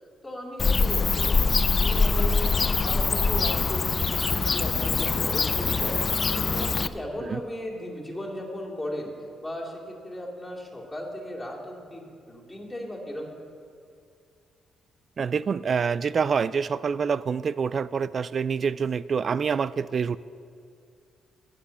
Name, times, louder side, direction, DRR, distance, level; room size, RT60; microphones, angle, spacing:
voice 1, 0.2-5.9 6.3-9.1 9.4-13.3, left 1 dB, 5° left, -6 dB, 2.7 m, -36 dB
Bird / Cricket, 0.6-6.9, left 4 dB, 35° left, 0.4 m, -24 dB
voice 2, 15.2-20.2, right 6 dB, 45° right, 18 dB, 0.3 m, -26 dB
9.9 x 7.9 x 7.0 m, 2.4 s
cardioid pair, 90°, 0 cm